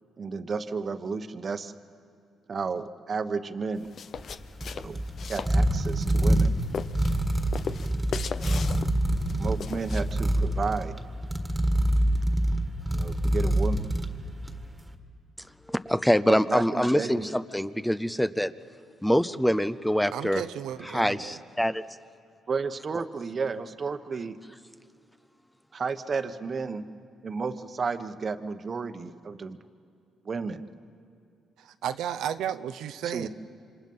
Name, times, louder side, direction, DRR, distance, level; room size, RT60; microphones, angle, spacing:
voice 1, 0.2-1.7 2.5-3.9 4.7-5.0 5.3-6.5 8.3-8.6 9.4-11.0 12.9-13.9 16.2-17.3 22.5-24.4 25.7-26.8 27.2-29.6 30.2-30.7 33.0-33.3, right 4 dB, 40° right, 10 dB, 1.1 m, -32 dB
sound 1, 3.8-10.4, left 6 dB, 55° left, 0.6 m, -39 dB
sound 2, 4.2-14.7, right 1 dB, 10° right, 1.8 m, -26 dB
voice 2, 15.7-18.5 19.0-20.4 20.8-21.8, equal, 5° left, 14 dB, 0.6 m, -25 dB
voice 3, 20.1-21.4 31.6-33.3, right 10 dB, 85° right, 10 dB, 0.7 m, -33 dB
27.5 x 25.5 x 5.6 m, 2.4 s
cardioid pair, 90°, 0 cm